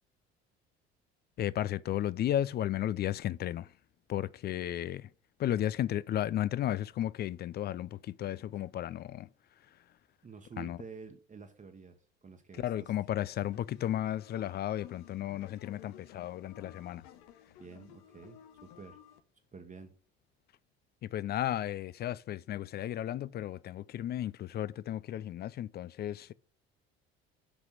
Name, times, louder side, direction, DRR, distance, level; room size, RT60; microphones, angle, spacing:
voice 1, 1.4-3.7 4.1-5.1 5.4-9.3 9.7-9.8 10.6-10.8 12.6-17.0 21.0-26.3, left 12 dB, 35° left, 0.4 m, -34 dB
voice 2, 10.2-11.9 12.2-12.9 17.6-19.0 19.5-19.9, right 5 dB, 25° right, 1.2 m, -49 dB
sound 1, 13.2-19.2, left 11 dB, 60° left, 1.0 m, -55 dB
6.0 x 5.9 x 6.1 m
figure-of-eight pair, 60°, 31 cm